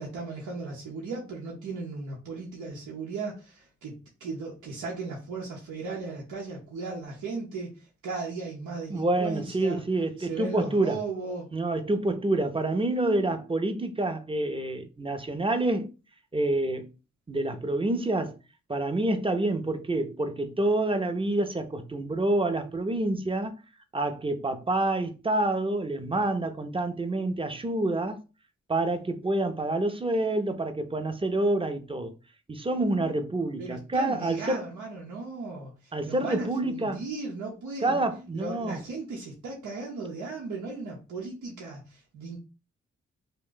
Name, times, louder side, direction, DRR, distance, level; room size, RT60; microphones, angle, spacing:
voice 1, 0.0-3.9 4.2-9.8 10.2-11.5 33.6-38.0 38.3-42.4, right 3 dB, 85° right, 0.8 m, -36 dB
voice 2, 8.9-11.0 11.5-15.9 16.3-16.9 17.3-18.4 18.7-23.5 23.9-28.2 28.7-32.1 32.5-34.7 35.9-37.0 37.8-38.8, right 2 dB, 20° right, 0.6 m, -27 dB
2.5 x 2.2 x 3.8 m
supercardioid pair, 45°, 29 cm